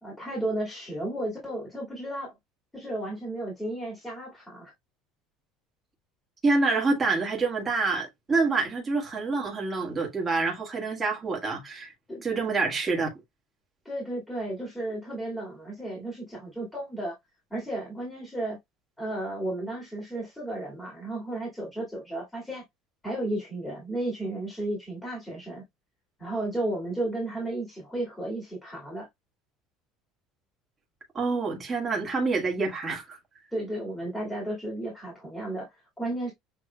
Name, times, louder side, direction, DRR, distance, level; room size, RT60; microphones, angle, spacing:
voice 1, 0.0-2.3 2.7-4.7 12.1-12.2 13.8-17.2 17.5-18.6 19.0-22.6 23.0-25.6 26.2-29.1 33.5-35.7 36.0-36.3, right 1 dB, 5° left, 2.1 m, -33 dB
voice 2, 6.4-11.9 12.2-13.1 31.1-33.2, right 3 dB, 15° right, 1.5 m, -27 dB
6.5 x 3.2 x 2.2 m
cardioid pair, 160°, 0 cm